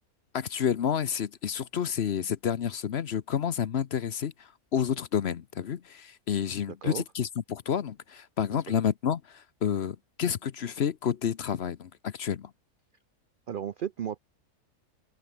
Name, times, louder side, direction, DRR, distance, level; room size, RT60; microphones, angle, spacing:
voice 1, 0.3-12.5, left 8 dB, 50° left, 0.9 m, -30 dB
voice 2, 13.5-14.2, right 9 dB, 85° right, 0.4 m, -34 dB
open air
omnidirectional pair, 1.6 m